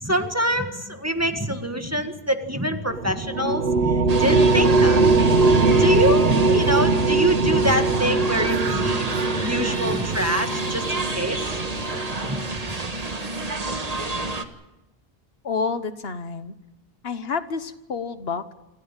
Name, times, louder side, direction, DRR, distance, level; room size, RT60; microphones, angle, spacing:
voice 1, 0.0-5.2 5.5-9.1 9.4-11.5 12.3-12.8, equal, 15° right, 6 dB, 1.6 m, -25 dB
sound 1, 2.9-12.6, right 3 dB, 75° right, 1.5 m, -21 dB
sound 2, 4.1-14.4, right 3 dB, 40° right, 1.6 m, -29 dB
voice 2, 15.4-16.5 17.0-18.5, left 5 dB, 75° left, 11 dB, 1.4 m, -29 dB
27.0 x 15.0 x 8.9 m, 0.98 s
omnidirectional pair, 1.0 m